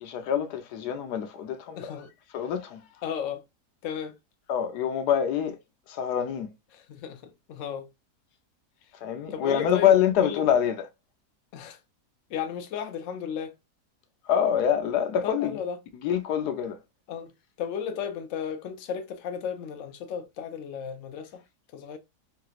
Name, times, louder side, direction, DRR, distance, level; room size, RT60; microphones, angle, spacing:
voice 1, 0.0-1.9 2.3-2.8 4.5-5.6 5.9-6.5 9.0-10.8 14.3-15.6 16.0-16.8, left 9 dB, 80° left, 1.2 m, -25 dB
voice 2, 1.8-2.1 3.0-3.4 3.8-4.2 6.7-7.2 7.5-7.9 9.3-9.9 10.2-10.4 11.5-11.8 12.3-13.5 15.2-15.8 17.1-17.3 17.6-21.4 21.7-22.0, left 7 dB, 60° left, 0.9 m, -34 dB
3.3 x 2.9 x 2.3 m
omnidirectional pair, 1.7 m